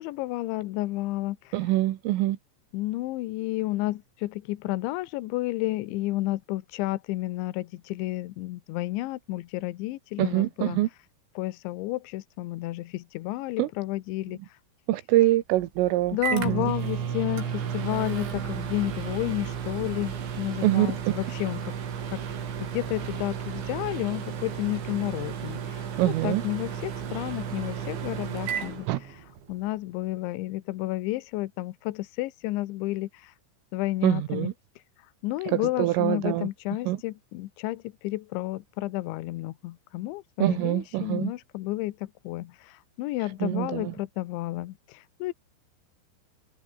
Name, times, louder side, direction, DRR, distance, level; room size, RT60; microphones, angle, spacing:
voice 1, 0.0-1.5 2.7-10.8 11.4-14.4 16.1-21.8 22.1-22.2 22.6-29.2 29.5-33.3 33.7-34.5 35.2-45.3, left 18 dB, 75° left, 3.2 m, -31 dB
voice 2, 1.5-2.4 10.2-10.9 13.6-13.7 14.9-16.7 20.6-20.9 26.0-26.4 28.9-29.0 34.0-34.5 35.5-36.5 36.9-37.0 40.4-41.3 43.4-43.9, right 16 dB, 85° right, 3.9 m, -24 dB
Microwave oven, 15.5-29.6, right 8 dB, 65° right, 6.1 m, -33 dB
omnidirectional pair, 5.8 m